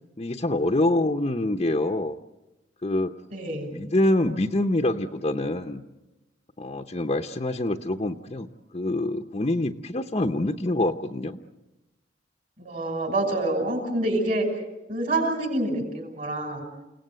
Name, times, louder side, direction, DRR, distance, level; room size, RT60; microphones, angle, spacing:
voice 1, 0.2-2.2 2.8-3.1 3.7-5.8 6.6-8.5 8.7-11.4, left 1 dB, 30° left, 3 dB, 0.8 m, -25 dB
voice 2, 3.3-3.8 12.6-14.5 14.9-16.6, right 1 dB, 50° right, 4 dB, 6.1 m, -27 dB
29.5 x 18.0 x 8.1 m, 1.0 s
head